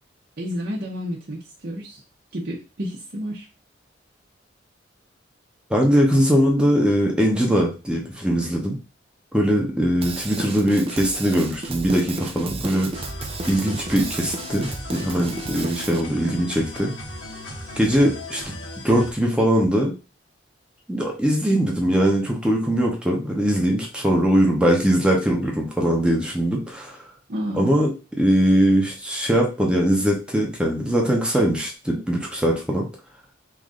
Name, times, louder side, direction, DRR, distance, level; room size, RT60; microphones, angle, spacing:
voice 1, 0.4-2.0 2.3-3.5 27.3-27.7, equal, 55° right, -4 dB, 0.8 m, -30 dB
voice 2, 5.7-8.8 9.3-12.9 13.5-16.9 17.8-18.4 18.8-19.9 20.9-27.0 27.5-27.9 28.2-32.9, equal, 5° right, 0 dB, 0.7 m, -21 dB
Drum kit / Drum, 10.0-16.0, right 3 dB, 30° right, 0.4 m, -33 dB
sound 1, 12.9-19.1, left 1 dB, 75° left, 1.2 m, -36 dB
3.2 x 2.6 x 3.7 m, 0.32 s
head